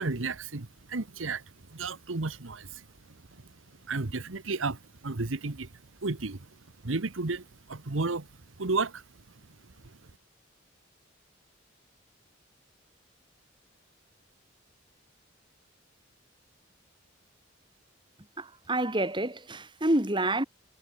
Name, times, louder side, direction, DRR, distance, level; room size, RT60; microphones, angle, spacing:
voice 1, 0.0-1.4 1.7-2.8 3.9-5.7 6.0-6.5 6.8-8.3 8.6-9.0 9.8-10.0, right 3 dB, 90° right, 1.3 m, -32 dB
voice 2, 18.4-20.4, right 1 dB, 25° right, 2.7 m, -28 dB
head